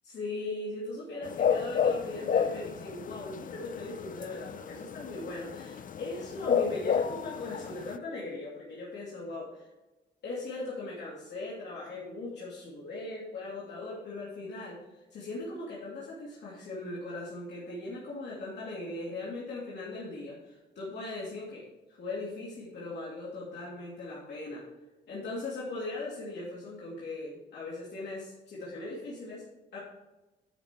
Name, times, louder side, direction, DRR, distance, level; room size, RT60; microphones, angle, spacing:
voice 1, 0.0-9.7 10.2-21.6 22.0-24.6 25.1-29.4 29.7-29.8, left 2 dB, 75° left, -6 dB, 2.6 m, -39 dB
sound 1, 1.2-8.0, left 7 dB, 50° left, 0.6 m, -31 dB
11.0 x 5.3 x 4.6 m, 1.1 s
cardioid pair, 95°, 18 cm